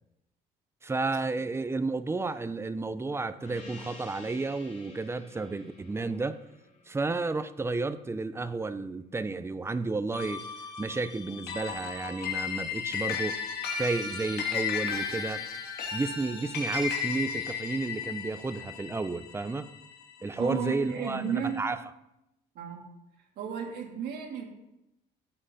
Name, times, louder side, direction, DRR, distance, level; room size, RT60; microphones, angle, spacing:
voice 1, 0.8-6.4 6.9-10.4 10.8-13.4 13.7-15.4 15.9-19.7 20.2-21.8, right 3 dB, 15° right, 0.7 m, -32 dB
Gong, 3.4-8.4, left 2 dB, 45° left, 5.2 m, -52 dB
sound 1, 10.1-20.7, left 6 dB, 70° left, 2.5 m, -35 dB
voice 2, 20.3-21.6 22.5-22.8 23.4-24.4, right 7 dB, 75° right, 3.3 m, -33 dB
17.0 x 7.8 x 4.2 m
cardioid pair, 110°, 17 cm